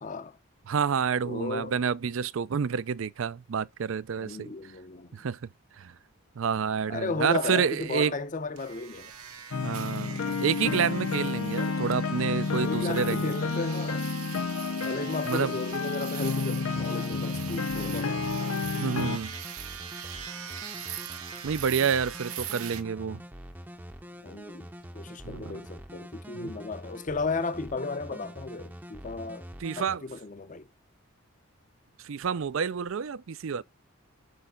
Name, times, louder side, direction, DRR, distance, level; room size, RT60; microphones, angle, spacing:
voice 1, 0.0-0.4 1.2-1.7 4.2-5.1 6.9-9.1 12.6-14.1 14.8-18.3 24.2-24.7 24.9-29.5 29.8-30.7, left 3 dB, 35° left, 0.6 m, -34 dB
voice 2, 0.7-4.5 5.1-5.4 5.8-5.9 6.4-8.2 9.6-13.3 15.3-15.5 18.8-19.4 21.4-23.2 25.2-25.6 26.3-26.5 29.6-30.0 32.0-33.6, right 6 dB, 65° right, 0.4 m, -29 dB
sound 1, 8.6-22.8, right 9 dB, 90° right, 1.6 m, -42 dB
sound 2, 9.5-19.2, left 4 dB, 80° left, 0.7 m, -30 dB
sound 3, 16.7-30.0, equal, 10° right, 0.6 m, -45 dB
6.4 x 5.3 x 3.7 m
head